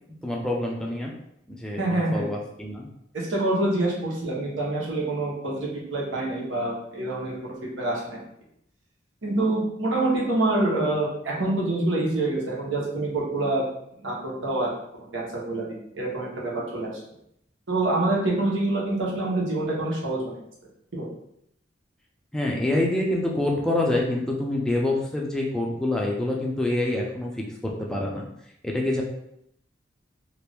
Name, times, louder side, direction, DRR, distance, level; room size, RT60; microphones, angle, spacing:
voice 1, 0.2-1.1 1.5-2.9 22.3-28.2 28.6-29.0, left 1 dB, 5° left, -2 dB, 0.5 m, -26 dB
voice 2, 1.8-2.3 3.1-8.2 9.2-13.6 14.0-14.7 14.9-15.6 15.9-16.9 17.7-20.4 20.9-21.1, right 2 dB, 75° right, -4 dB, 1.0 m, -26 dB
2.9 x 2.5 x 3.4 m, 0.75 s
head